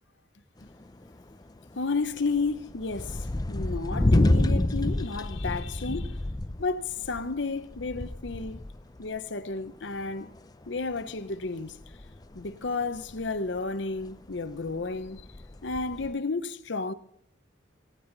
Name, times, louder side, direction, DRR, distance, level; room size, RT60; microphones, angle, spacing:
sound 1, 0.6-9.2 9.6-13.7 14.0-16.1, left 1 dB, 20° left, 0.5 m, -29 dB
voice 1, 1.8-6.2 6.6-8.6 9.0-10.3 10.7-11.8 12.3-15.3 15.6-16.9, left 3 dB, 60° left, 0.9 m, -32 dB
18.5 x 14.5 x 4.0 m
head